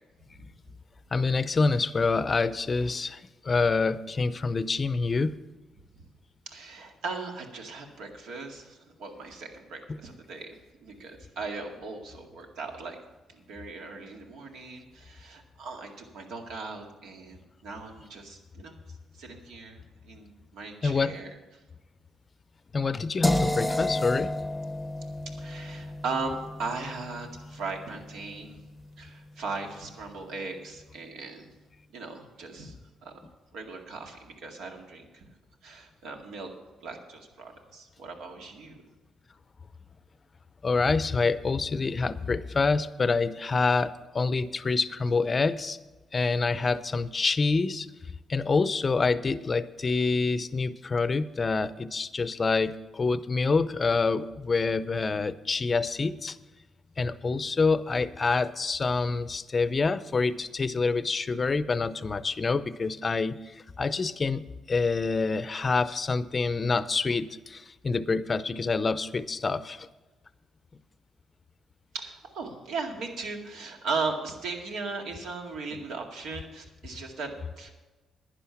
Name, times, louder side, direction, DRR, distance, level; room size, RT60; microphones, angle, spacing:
voice 1, 1.1-3.2 3.4-5.4 20.8-21.1 22.7-24.3 40.6-45.8 46.1-47.9 48.3-56.4 57.0-63.4 63.8-64.4 64.7-69.9, left 4 dB, 35° left, 15 dB, 0.5 m, -26 dB
voice 2, 6.5-13.0 13.3-21.3 25.3-28.6 29.0-31.5 31.9-32.7 33.0-33.1 33.5-35.3 35.6-36.5 36.8-38.8 71.9-77.7, right 4 dB, 80° right, 2 dB, 2.1 m, -38 dB
sound 1, 23.2-29.1, left 1 dB, 5° left, 0.8 m, -32 dB
11.0 x 10.0 x 5.8 m, 1.2 s
cardioid pair, 90°, 0 cm